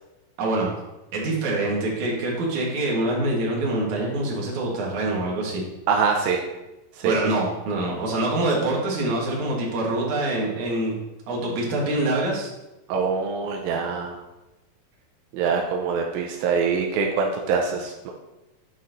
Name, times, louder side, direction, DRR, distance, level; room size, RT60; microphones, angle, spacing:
voice 1, 0.4-0.7 1.1-5.6 7.0-11.0 11.3-12.5, right 2 dB, 60° right, -3 dB, 2.8 m, -25 dB
voice 2, 5.9-6.4 7.0-7.2 12.9-14.2 15.3-18.1, right 5 dB, 85° right, 1 dB, 2.4 m, -24 dB
9.6 x 4.1 x 3.9 m, 1.0 s
omnidirectional pair, 4.2 m